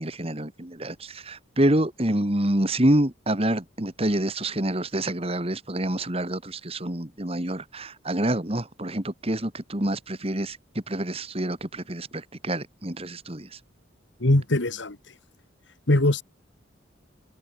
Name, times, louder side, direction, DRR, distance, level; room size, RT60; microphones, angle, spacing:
voice 1, 0.0-13.6, right 1 dB, 30° right, 2.5 m, -27 dB
voice 2, 14.2-15.0 15.9-16.2, left 1 dB, 80° left, 2.0 m, -21 dB
head